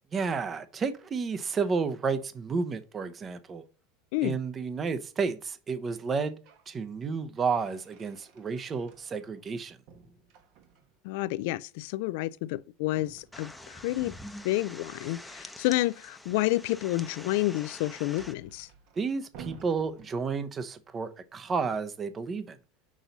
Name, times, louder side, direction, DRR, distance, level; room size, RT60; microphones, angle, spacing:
voice 1, 0.1-3.6 4.2-6.4 6.7-9.8 19.0-22.6, right 5 dB, 30° right, 0.8 m, -31 dB
sound 1, 6.1-6.7 7.1-9.5 9.9-11.1 12.9-14.5 16.5-20.7, right 6 dB, 60° right, 1.2 m, -53 dB
voice 2, 11.0-14.1 14.4-18.7, left 17 dB, 70° left, 0.3 m, -29 dB
sound 2, 13.3-18.3, left 1 dB, 5° left, 0.8 m, -46 dB
6.2 x 3.9 x 4.0 m
hypercardioid pair, 95°, 0 cm